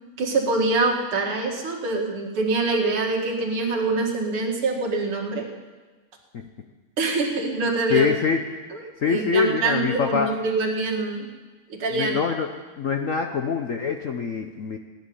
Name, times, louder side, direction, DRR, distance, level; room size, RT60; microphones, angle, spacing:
voice 1, 0.2-5.5 7.0-8.1 8.7-11.3 11.7-12.2, right 3 dB, 85° right, 0 dB, 2.8 m, -25 dB
voice 2, 7.9-8.4 9.0-10.3 11.9-12.5 12.8-14.8, left 6 dB, 60° left, 4 dB, 0.8 m, -24 dB
17.0 x 10.5 x 7.0 m, 1.3 s
omnidirectional pair, 2.3 m